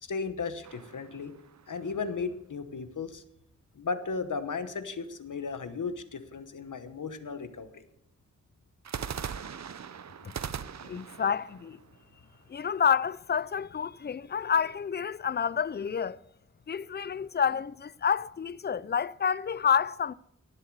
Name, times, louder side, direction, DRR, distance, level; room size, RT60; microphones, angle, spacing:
voice 1, 0.0-1.3 1.7-3.2 3.7-7.8, left 4 dB, 75° left, 1.1 m, -35 dB
sound 1, 0.6-2.1 8.8-12.8, right 7 dB, 60° right, 0.6 m, -40 dB
voice 2, 10.8-11.8 12.5-16.2 16.7-20.1, left 7 dB, 35° left, 0.4 m, -29 dB
17.0 x 7.5 x 4.7 m
wide cardioid pair, 70°, 31 cm